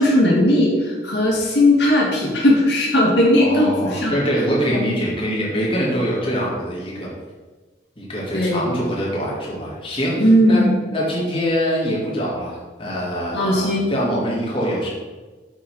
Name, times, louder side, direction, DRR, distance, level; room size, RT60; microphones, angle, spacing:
voice 1, 0.0-4.1 4.7-4.8 8.3-8.7 10.2-10.7 13.3-13.9, left 1 dB, 80° left, -3 dB, 1.8 m, -17 dB
voice 2, 3.4-7.1 8.0-10.6 10.9-14.9, equal, 30° left, -5 dB, 2.4 m, -24 dB
8.4 x 3.9 x 6.2 m, 1.3 s
head